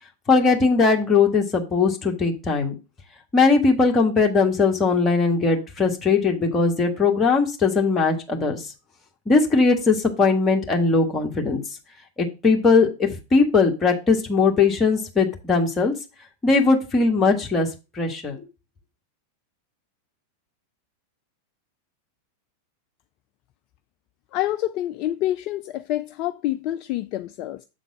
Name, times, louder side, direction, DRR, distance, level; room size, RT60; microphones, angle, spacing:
voice 1, 0.3-2.7 3.3-8.6 9.3-11.6 12.2-15.9 16.4-17.7 17.9-18.4, left 4 dB, 20° left, 1.5 m, -19 dB
voice 2, 24.3-27.6, left 14 dB, 40° left, 0.3 m, -27 dB
7.4 x 3.8 x 6.1 m
figure-of-eight pair, 90°, 0 cm